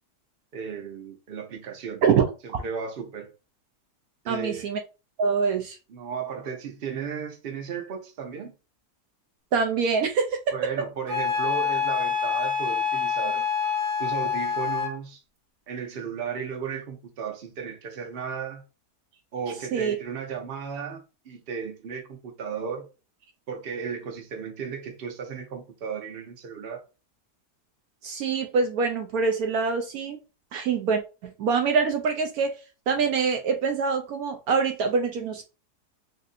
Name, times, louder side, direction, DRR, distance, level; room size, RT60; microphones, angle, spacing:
voice 1, 0.5-2.0 2.4-3.3 4.2-4.7 5.9-8.6 10.5-13.4 14.0-15.2 15.7-18.6 19.3-22.9 23.5-26.8, right 6 dB, 45° right, 0.9 m, -35 dB
voice 2, 2.0-2.6 4.3-4.8 5.2-5.8 9.5-10.5 19.7-20.0 28.0-30.2 30.5-31.0 31.4-32.6 32.9-35.4, right 5 dB, 70° right, 1.0 m, -25 dB
Wind instrument woodwind instrument, 11.1-15.0, left 6 dB, 90° right, 1.9 m, -26 dB
4.1 x 2.6 x 2.6 m
omnidirectional pair, 1.7 m